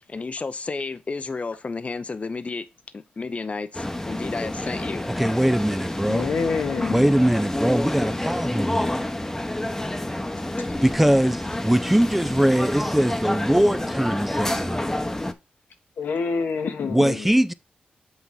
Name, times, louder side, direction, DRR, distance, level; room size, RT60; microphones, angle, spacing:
voice 1, 0.1-2.7 2.9-5.1, left 4 dB, 45° left, 0.6 m, -32 dB
sound 1, 3.7-15.3, left 1 dB, 15° left, 0.9 m, -28 dB
voice 2, 5.2-6.3 6.9-9.0 10.8-14.9 16.9-17.5, equal, 5° right, 0.4 m, -21 dB
voice 3, 6.1-7.1 10.6-10.7 16.0-17.3, left 5 dB, 85° left, 1.2 m, -27 dB
8.1 x 3.0 x 5.5 m
cardioid pair, 55°, 3 cm